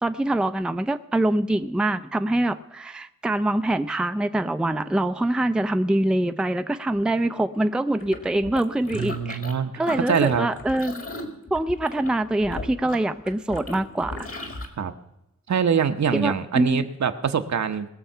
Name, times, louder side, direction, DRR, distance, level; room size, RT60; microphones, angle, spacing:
voice 1, 0.0-9.4 9.8-11.0 11.5-14.3 16.1-16.9, right 1 dB, 5° right, 9 dB, 0.5 m, -24 dB
sound 1, 8.0-9.5 9.8-14.7, left 2 dB, 50° left, 2.2 m, -36 dB
voice 2, 9.0-9.7 10.1-10.5 14.8-14.9 15.5-17.9, right 7 dB, 65° right, 8 dB, 1.0 m, -24 dB
20.5 x 7.0 x 5.6 m, 0.87 s
wide cardioid pair, 105°, 30 cm